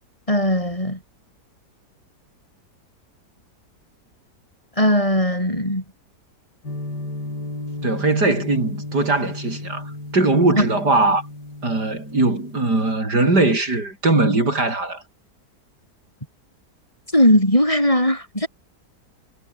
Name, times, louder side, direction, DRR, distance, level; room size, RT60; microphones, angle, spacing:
voice 1, 0.3-1.0 4.8-5.8 10.5-10.6 17.1-18.5, equal, 20° left, 8.1 m, -18 dB
sound 1, 6.6-13.0, left 2 dB, 70° left, 8.5 m, -34 dB
voice 2, 7.8-11.2 11.6-15.0, right 2 dB, 70° right, 6.5 m, -20 dB
omnidirectional pair, 1.8 m